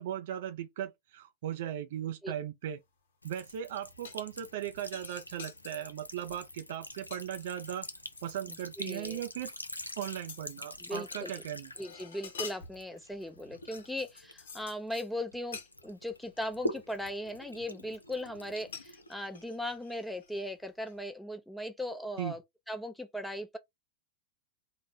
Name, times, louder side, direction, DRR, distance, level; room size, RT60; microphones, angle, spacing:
voice 1, 0.0-2.8 3.2-7.9 8.2-9.5 10.0-11.7 22.2-22.4, right 11 dB, 60° right, 0.4 m, -38 dB
Sink (filling or washing) / Trickle dribble, 3.2-15.3 15.7-19.6, left 1 dB, 90° left, 0.5 m, -45 dB
sound 1, 4.0-4.5 4.8-5.8 6.3-6.6 6.9-8.7 9.0-9.1 9.5-11.2 11.5-13.3 13.7-15.1 15.5-15.7 16.3-16.4 16.9-17.5 18.7-20.5 20.9-21.0, left 6 dB, 65° left, 1.1 m, -48 dB
voice 2, 8.8-9.2 10.8-11.3 11.8-22.4 22.7-23.6, left 1 dB, 5° left, 0.6 m, -38 dB
3.8 x 2.0 x 3.7 m
figure-of-eight pair, 90°, 0 cm